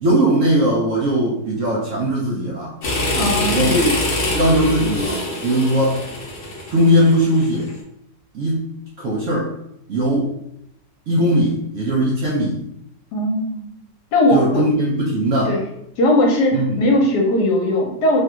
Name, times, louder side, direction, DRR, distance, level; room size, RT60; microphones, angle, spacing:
voice 1, 0.0-2.7 3.5-4.0 4.3-5.1 5.4-6.0 6.7-7.7 8.3-9.5 9.9-10.3 11.1-12.6 14.3-15.6 16.5-16.8, equal, 65° right, -4 dB, 0.8 m, -19 dB
sound 1, 2.8-7.7, left 1 dB, 55° left, 0.9 m, -24 dB
voice 2, 3.1-3.7 13.1-13.6 14.1-14.6 15.4-15.6 16.0-18.2, left 1 dB, 70° left, 0 dB, 1.3 m, -18 dB
3.2 x 2.3 x 2.9 m, 0.77 s
omnidirectional pair, 1.9 m